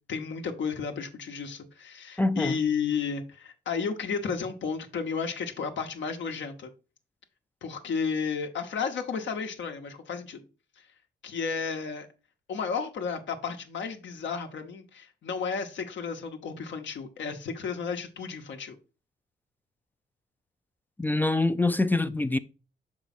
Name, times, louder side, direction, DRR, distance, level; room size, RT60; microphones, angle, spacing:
voice 1, 0.1-6.7 7.6-10.4 10.8-10.9 11.2-12.1 12.5-18.8, left 5 dB, 70° left, 1.0 m, -32 dB
voice 2, 2.2-2.6 21.0-22.4, left 2 dB, 10° left, 0.4 m, -25 dB
5.9 x 4.8 x 4.2 m
cardioid pair, 110°, 20 cm